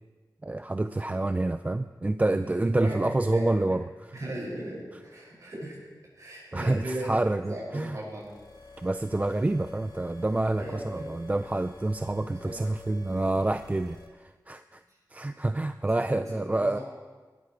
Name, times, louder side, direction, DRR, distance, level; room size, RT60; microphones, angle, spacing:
voice 1, 0.4-3.8 6.5-8.0 8.8-14.8 15.1-16.8, right 2 dB, 20° right, 10 dB, 0.4 m, -28 dB
voice 2, 2.4-3.4 3.7-3.8 4.1-5.8 6.1-7.2 7.5-8.3 10.6-11.4 12.4-12.7 14.9-15.0 16.1-16.8, right 1 dB, 50° right, -4 dB, 6.4 m, -38 dB
sound 1, 8.1-14.1, left 3 dB, 65° left, 2.1 m, -49 dB
19.0 x 12.5 x 4.6 m, 1.4 s
wide cardioid pair, 95°, 7 cm